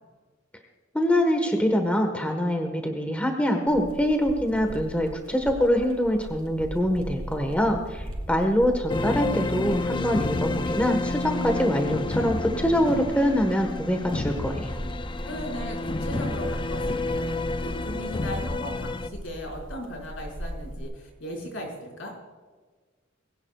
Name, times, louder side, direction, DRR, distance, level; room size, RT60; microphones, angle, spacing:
voice 1, 0.9-14.7, equal, 5° left, 4 dB, 1.3 m, -24 dB
sound 1, 3.7-20.8, equal, 85° right, 3.2 m, -39 dB
voice 2, 7.4-7.8 8.2-8.6 15.2-22.1, equal, 70° left, -1 dB, 5.3 m, -38 dB
sound 2, 8.9-19.1, left 2 dB, 25° left, 0.4 m, -30 dB
21.5 x 17.0 x 2.4 m, 1.4 s
head